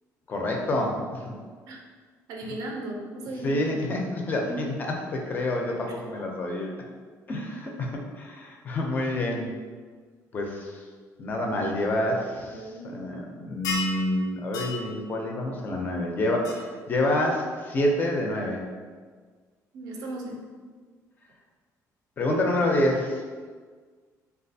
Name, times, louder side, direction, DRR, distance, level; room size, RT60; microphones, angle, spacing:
voice 1, 0.3-1.3 3.4-4.7 5.1-6.7 7.3-9.5 10.3-10.8 11.2-12.6 12.9-18.6 22.2-23.2, left 1 dB, 30° left, 0 dB, 0.4 m, -27 dB
voice 2, 2.3-3.7 4.4-4.6 5.9-6.0 12.4-12.9 19.7-20.6, right 1 dB, 80° right, 0 dB, 0.5 m, -37 dB
sound 1, 13.6-14.0 14.5-14.8 16.4-16.5, left 3 dB, 90° left, 0.5 m, -30 dB
3.1 x 2.3 x 2.6 m, 1.6 s
cardioid pair, 175°, 6 cm